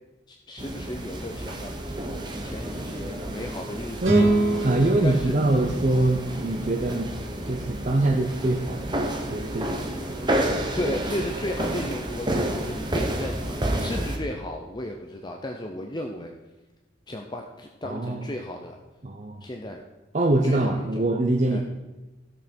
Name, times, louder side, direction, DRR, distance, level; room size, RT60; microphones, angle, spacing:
voice 1, 0.3-2.0 2.3-4.3 5.0-5.3 10.7-16.3 17.1-18.8 19.4-19.8 20.4-21.0 21.5-21.6, left 1 dB, 20° left, 2 dB, 0.6 m, -34 dB
sound 1, 0.6-14.2, right 1 dB, 25° right, 1.0 m, -30 dB
voice 2, 4.0-4.3 4.6-7.2 7.4-10.2 10.5-10.9 17.8-18.3 19.0-19.5 20.1-21.6, right 2 dB, 40° right, 2 dB, 0.7 m, -24 dB
sound 2, 4.0-7.3, right 2 dB, 90° right, 3.0 m, -27 dB
16.0 x 6.5 x 4.4 m, 1.1 s
head